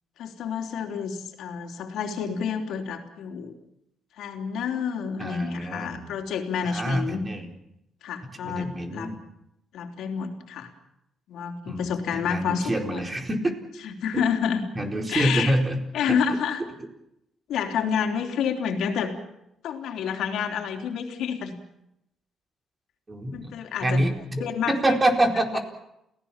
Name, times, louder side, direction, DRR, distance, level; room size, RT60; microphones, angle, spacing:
voice 1, 0.2-3.5 4.2-7.2 8.0-9.1 9.7-10.7 11.3-13.0 13.8-14.6 15.1-15.5 15.9-16.6 17.5-19.1 19.6-21.5 23.3-24.1 24.4-24.8 25.5-25.6, left 7 dB, 80° left, 4 dB, 3.4 m, -29 dB
voice 2, 5.2-6.1 6.6-7.5 8.4-9.2 11.7-13.6 14.1-14.2 14.7-15.8 16.1-16.2 23.1-23.5 23.8-25.6, right 1 dB, 25° right, 3 dB, 4.5 m, -26 dB
29.0 x 17.5 x 7.4 m, 0.82 s
cardioid pair, 90°, 0 cm